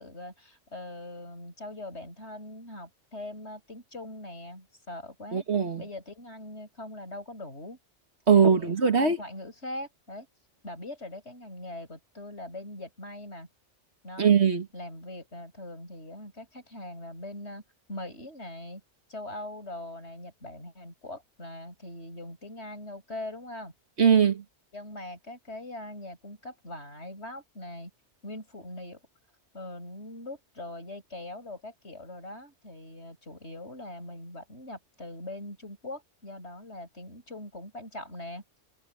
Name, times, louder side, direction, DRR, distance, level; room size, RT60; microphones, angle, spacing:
voice 1, 0.0-5.4 5.8-7.8 8.3-8.7 9.0-10.3 10.6-13.5 14.0-14.3 14.7-17.6 17.9-18.8 19.1-23.7 24.7-27.9 28.2-29.0 29.5-38.4, left 1 dB, 65° left, 8.6 m, -41 dB
voice 2, 5.3-5.8 8.3-9.2 14.2-14.7 24.0-24.4, right 6 dB, 65° right, 2.1 m, -21 dB
omnidirectional pair, 1.2 m